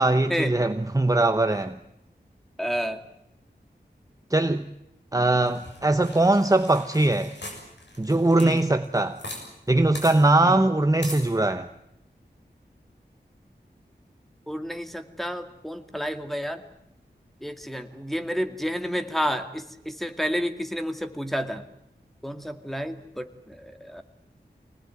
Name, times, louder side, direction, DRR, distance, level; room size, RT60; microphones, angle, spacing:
voice 1, 0.0-1.8 4.3-4.7 5.1-7.3 8.0-9.2 9.7-11.7, right 2 dB, 20° right, 9 dB, 0.9 m, -21 dB
voice 2, 2.6-3.0 8.4-8.6 10.4-10.6 14.5-16.6 17.4-21.6 22.2-24.0, equal, ahead, 8 dB, 2.3 m, -30 dB
sound 1, 5.5-9.4 9.7-9.8 9.9-10.1 11.0-11.2, left 1 dB, 80° left, 7.1 m, -40 dB
25.0 x 19.0 x 9.4 m, 0.85 s
wide cardioid pair, 60°, 18 cm